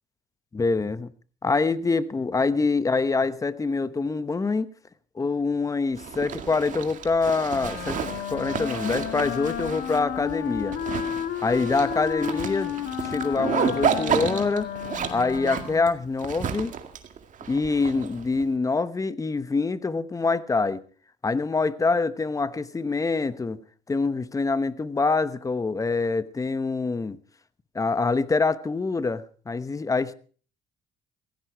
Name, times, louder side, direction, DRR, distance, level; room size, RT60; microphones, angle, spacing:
voice 1, 0.5-1.1 1.4-4.7 5.2-10.7 11.4-14.7 15.0-16.7 17.5-20.8 21.2-23.6 23.9-27.2 27.7-30.1, left 4 dB, 20° left, 1.0 m, -25 dB
Zipper (clothing), 6.0-18.4, right 7 dB, 50° right, 2.1 m, -32 dB
Wind instrument woodwind instrument, 7.5-16.0, left 10 dB, 70° left, 1.7 m, -32 dB
16.5 x 16.0 x 4.6 m
cardioid pair, 110°, 17 cm